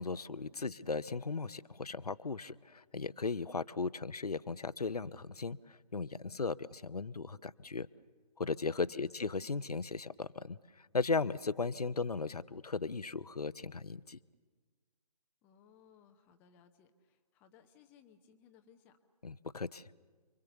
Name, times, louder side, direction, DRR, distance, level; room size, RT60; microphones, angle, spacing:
voice 1, 0.0-7.9 8.4-14.2 19.2-19.9, left 4 dB, 70° left, 16 dB, 0.8 m, -37 dB
voice 2, 0.5-0.8 8.9-9.1 15.4-19.0, left 7 dB, 10° left, 7 dB, 0.7 m, -63 dB
29.5 x 24.0 x 6.9 m, 1.5 s
figure-of-eight pair, 150°, 20 cm